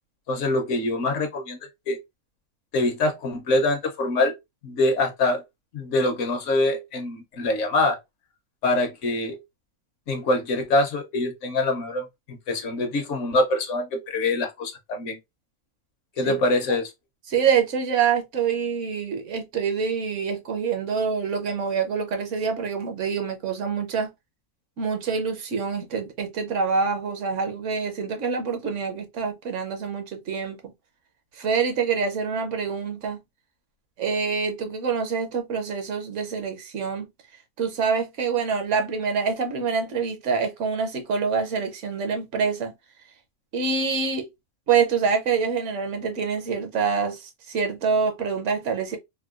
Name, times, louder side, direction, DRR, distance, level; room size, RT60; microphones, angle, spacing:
voice 1, 0.3-1.6 1.9-2.0 2.7-4.4 4.6-5.4 5.7-8.0 8.6-9.4 10.1-15.2 16.2-16.9, left 2 dB, 65° left, 1.0 m, -24 dB
voice 2, 17.3-24.1 24.8-30.7 31.3-33.2 34.0-37.1 37.6-42.7 43.5-44.3 44.7-49.0, right 6 dB, 65° right, 1.0 m, -26 dB
3.6 x 2.2 x 2.3 m
omnidirectional pair, 1.4 m